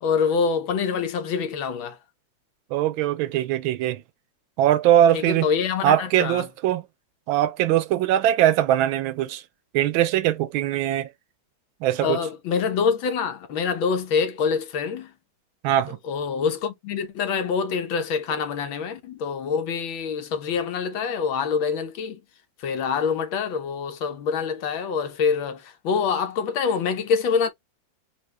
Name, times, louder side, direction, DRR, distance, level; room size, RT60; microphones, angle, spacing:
voice 1, 0.0-2.0 5.1-6.4 12.0-15.1 16.1-22.2 22.6-27.5, left 6 dB, 80° left, 1.7 m, -25 dB
voice 2, 2.7-4.0 4.6-5.5 5.8-6.8 7.3-9.4 9.7-11.1 11.8-12.2 15.6-16.0, right 12 dB, 85° right, 1.4 m, -21 dB
4.4 x 2.6 x 3.2 m
omnidirectional pair, 2.2 m